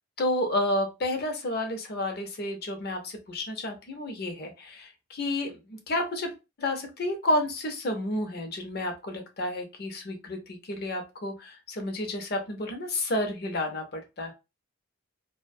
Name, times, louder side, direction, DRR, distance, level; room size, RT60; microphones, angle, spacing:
voice 1, 0.2-14.3, left 1 dB, 45° left, 5 dB, 0.6 m, -31 dB
2.4 x 2.1 x 2.5 m, 0.26 s
head